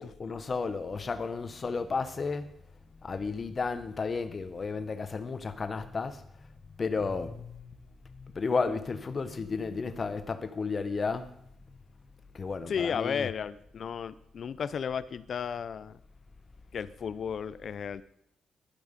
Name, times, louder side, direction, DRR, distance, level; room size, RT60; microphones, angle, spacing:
voice 1, 0.0-2.5 3.0-6.2 6.7-11.3 12.3-13.3, left 4 dB, 30° left, 1.1 m, -33 dB
voice 2, 12.7-16.0 16.7-18.0, left 7 dB, 45° left, 0.7 m, -34 dB
16.5 x 12.0 x 5.4 m
wide cardioid pair, 170°, 0 cm